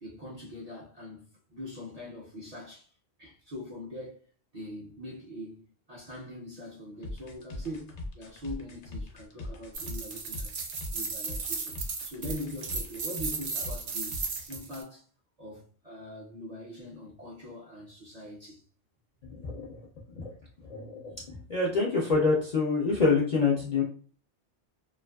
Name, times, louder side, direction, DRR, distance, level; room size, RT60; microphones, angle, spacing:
voice 1, 0.0-2.9 3.2-4.3 4.5-10.6 10.9-11.8 12.0-15.1 15.4-18.6, left 1 dB, 50° right, 0.5 m, -42 dB
sound 1, 7.0-14.6, left 2 dB, 75° left, 0.9 m, -40 dB
sound 2, 9.7-14.8, right 4 dB, 70° right, 0.8 m, -36 dB
voice 2, 19.2-23.8, left 4 dB, 55° left, 0.4 m, -27 dB
2.5 x 2.4 x 2.2 m
omnidirectional pair, 1.2 m